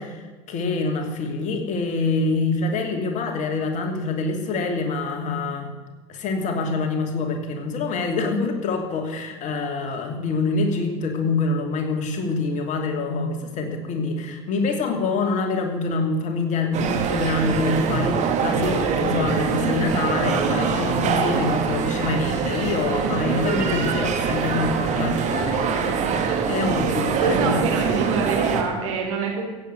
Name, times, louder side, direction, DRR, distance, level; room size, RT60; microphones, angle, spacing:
voice 1, 0.0-5.7 6.1-27.6, left 3 dB, 45° left, 4 dB, 2.8 m, -26 dB
sound 1, 16.7-28.6, right 6 dB, 45° right, 2.6 m, -24 dB
voice 2, 27.2-29.4, right 4 dB, 75° right, 0 dB, 4.8 m, -25 dB
16.0 x 8.3 x 8.1 m, 1.3 s
hypercardioid pair, 80°, 17 cm